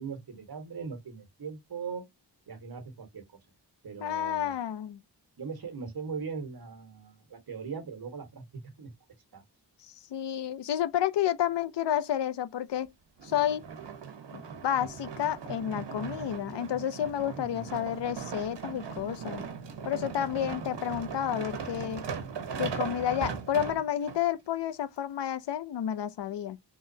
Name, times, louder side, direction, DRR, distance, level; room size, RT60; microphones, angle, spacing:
voice 1, 0.0-2.0 2.5-3.4 3.8-4.6 5.4-8.9 9.3-9.4 17.4-17.7, right 5 dB, 60° right, 1.3 m, -40 dB
voice 2, 4.0-5.0 9.8-12.9 13.2-13.6 14.3-19.4 19.8-22.1 22.6-26.6, left 10 dB, 75° left, 0.5 m, -30 dB
sound 1, 13.2-24.2 24.8-24.9, right 6 dB, 85° right, 1.0 m, -39 dB
3.8 x 3.0 x 2.7 m
wide cardioid pair, 110°, 42 cm